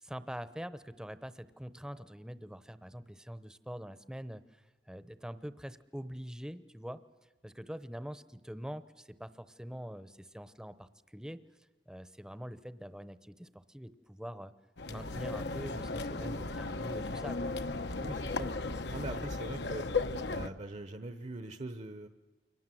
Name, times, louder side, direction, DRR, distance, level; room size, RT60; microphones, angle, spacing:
voice 1, 0.0-7.0 7.4-11.4 11.9-14.5 14.9-17.5, equal, 5° right, 13 dB, 0.8 m, -44 dB
sound 1, 14.8-20.5, left 3 dB, 70° left, 1.1 m, -36 dB
voice 2, 18.0-18.5 18.9-19.9 20.3-22.1, right 2 dB, 40° right, 9 dB, 0.9 m, -42 dB
29.5 x 23.5 x 7.7 m, 1.2 s
head